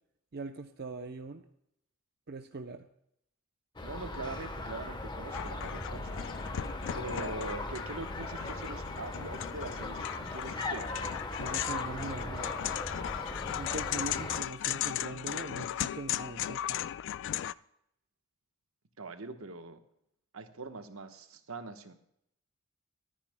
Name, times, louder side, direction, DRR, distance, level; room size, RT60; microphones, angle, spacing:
voice 1, 0.3-1.4 2.3-2.9 11.4-12.6 13.6-16.8, right 3 dB, 50° right, 6 dB, 0.6 m, -41 dB
sound 1, 3.8-14.4, left 2 dB, 20° left, 1.0 m, -39 dB
voice 2, 3.8-6.2 6.9-10.9 19.0-19.8 20.3-21.9, right 3 dB, 75° right, 7 dB, 1.1 m, -42 dB
sound 2, 5.3-17.5, left 12 dB, 60° left, 0.3 m, -37 dB
23.5 x 10.0 x 2.2 m, 0.77 s
head